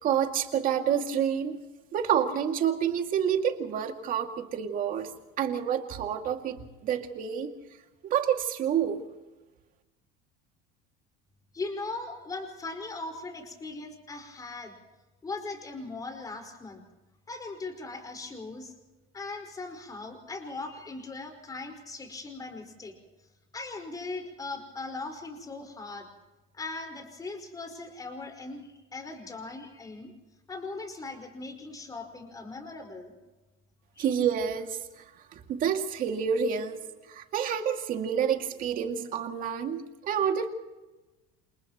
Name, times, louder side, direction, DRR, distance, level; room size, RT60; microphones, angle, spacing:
voice 1, 0.0-1.6 1.9-5.1 5.4-7.5 8.0-9.0 34.0-35.0 35.3-36.8 37.1-40.5, right 8 dB, 40° right, 4 dB, 2.4 m, -28 dB
voice 2, 11.5-14.7 15.2-16.8 17.3-18.7 19.1-22.9 23.5-26.1 26.5-30.1 30.5-33.1 33.9-34.0, left 3 dB, 15° left, 4 dB, 5.1 m, -39 dB
29.0 x 28.5 x 3.1 m, 1.1 s
cardioid pair, 150°, 21 cm